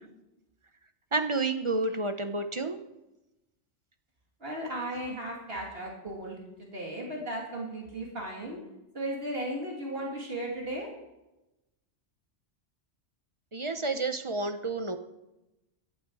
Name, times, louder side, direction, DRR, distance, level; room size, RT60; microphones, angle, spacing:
voice 1, 1.1-2.8 13.5-15.0, right 3 dB, 30° right, 8 dB, 0.7 m, -30 dB
voice 2, 4.4-8.6 8.9-10.9, right 1 dB, 55° right, -2 dB, 2.7 m, -36 dB
17.0 x 11.5 x 4.7 m, 0.97 s
omnidirectional pair, 1.2 m